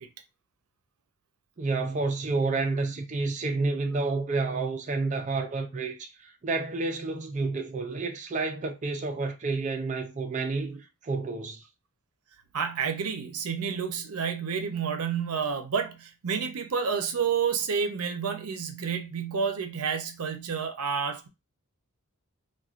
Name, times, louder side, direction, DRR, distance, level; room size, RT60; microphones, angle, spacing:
voice 1, 1.6-11.6, right 3 dB, 35° right, 0.4 m, -30 dB
voice 2, 12.5-21.3, right 6 dB, 85° right, 0.6 m, -29 dB
4.3 x 2.2 x 2.4 m
head